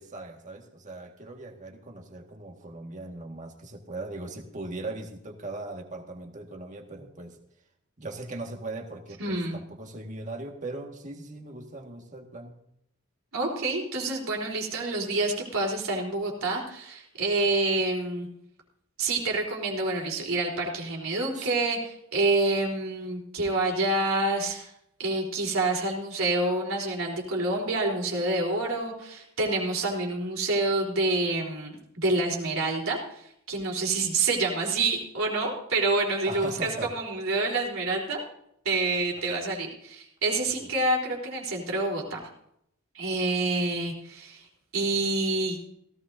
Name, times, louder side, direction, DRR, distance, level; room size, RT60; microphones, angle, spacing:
voice 1, 0.0-7.4 8.0-12.5 21.3-21.5 36.3-36.9 39.3-39.4, right 2 dB, 35° right, 3 dB, 1.7 m, -39 dB
voice 2, 9.2-9.6 13.3-18.3 19.0-24.7 25.0-38.2 38.6-42.2 42.9-44.5 44.7-45.6, right 2 dB, 70° right, 0 dB, 3.8 m, -27 dB
17.5 x 16.0 x 2.7 m, 0.75 s
head